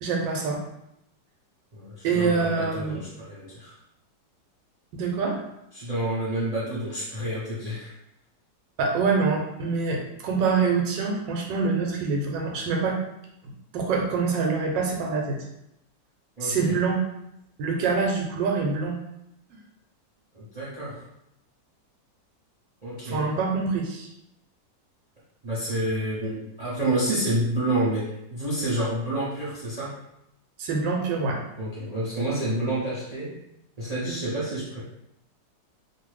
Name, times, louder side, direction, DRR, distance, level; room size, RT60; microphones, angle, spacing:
voice 1, 0.0-0.6 2.0-3.0 4.9-5.4 8.8-13.0 13.7-15.4 16.4-17.0 17.6-19.0 23.1-24.1 30.6-31.4, right 4 dB, 85° right, 1 dB, 1.3 m, -25 dB
voice 2, 1.7-3.7 5.7-7.9 16.4-16.8 20.3-21.0 22.8-23.3 25.4-30.0 31.6-33.3 33.8-34.8, right 1 dB, 65° right, -9 dB, 0.3 m, -29 dB
2.7 x 2.5 x 3.2 m, 0.81 s
omnidirectional pair, 1.9 m